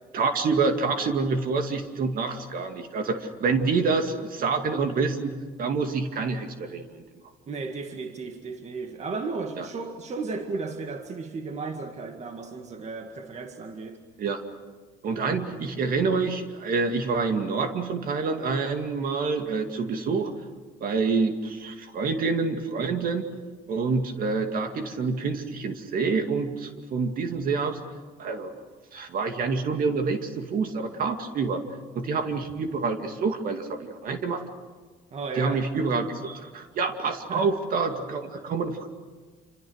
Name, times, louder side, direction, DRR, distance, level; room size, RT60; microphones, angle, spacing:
voice 1, 0.1-7.0 9.6-9.7 14.2-14.4 15.0-20.3 20.8-23.3 23.7-27.8 28.2-28.5 28.9-31.6 31.9-34.4 35.4-38.9, right 4 dB, 55° right, 2.4 m, -27 dB
voice 2, 7.5-14.0 35.1-35.7 37.3-37.5, right 4 dB, 40° right, 2.0 m, -34 dB
28.0 x 26.0 x 6.5 m
cardioid pair, 110°, 17 cm